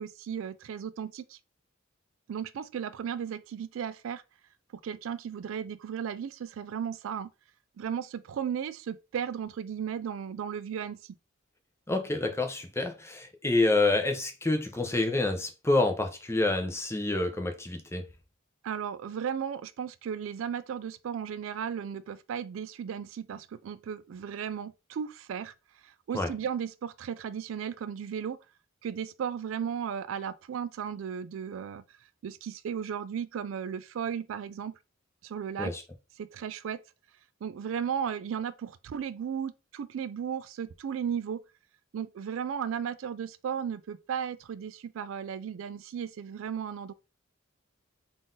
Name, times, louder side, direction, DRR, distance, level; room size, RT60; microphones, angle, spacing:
voice 1, 0.0-1.4 2.3-4.2 4.7-7.3 7.8-11.1 18.6-25.5 25.8-28.4 28.8-31.8 32.2-34.8 35.2-35.7 36.2-36.8 37.4-41.4 41.9-46.9, right 8 dB, 70° right, 0.3 m, -35 dB
voice 2, 11.9-18.0 26.1-26.3 35.6-35.8, left 2 dB, 15° left, 0.5 m, -28 dB
3.9 x 2.5 x 3.7 m
head